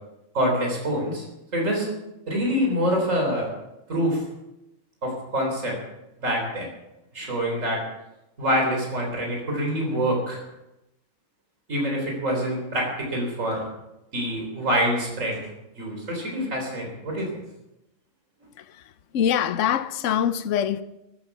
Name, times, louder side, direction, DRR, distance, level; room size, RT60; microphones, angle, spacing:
voice 1, 0.3-1.2 1.5-1.9 2.3-3.5 3.9-4.2 5.0-5.8 6.2-6.7 7.1-7.8 8.4-10.4 11.7-13.6 14.1-15.4 15.8-17.3, equal, 75° right, 4.2 m, -25 dB
voice 2, 18.6-20.8, left 9 dB, 70° left, 1.0 m, -24 dB
14.0 x 12.5 x 5.9 m
omnidirectional pair, 1.4 m